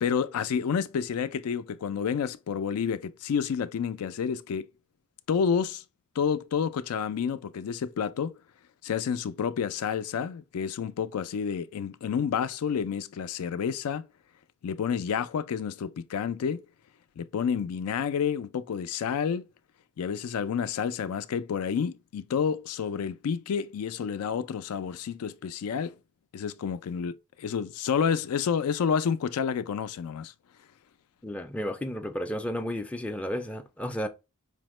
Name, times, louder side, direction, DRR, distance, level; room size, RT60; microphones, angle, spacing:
voice 1, 0.0-4.7 5.3-5.8 6.2-8.4 8.8-14.0 14.6-16.6 17.2-19.5 20.0-25.9 26.3-30.3, left 7 dB, 90° left, 0.4 m, -29 dB
voice 2, 31.2-34.1, equal, 5° left, 0.3 m, -32 dB
5.0 x 2.1 x 3.0 m
head